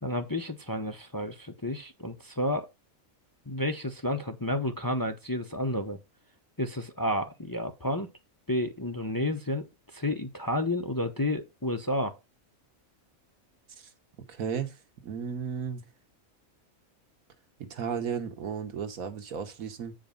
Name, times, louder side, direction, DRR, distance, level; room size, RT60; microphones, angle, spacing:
voice 1, 0.0-2.7 3.5-6.0 6.6-8.1 8.5-9.6 9.9-12.2, left 1 dB, 20° left, 0.7 m, -31 dB
voice 2, 14.3-14.8 15.0-15.8 17.6-19.9, right 7 dB, 85° right, 1.7 m, -34 dB
8.3 x 5.0 x 5.2 m
omnidirectional pair, 1.4 m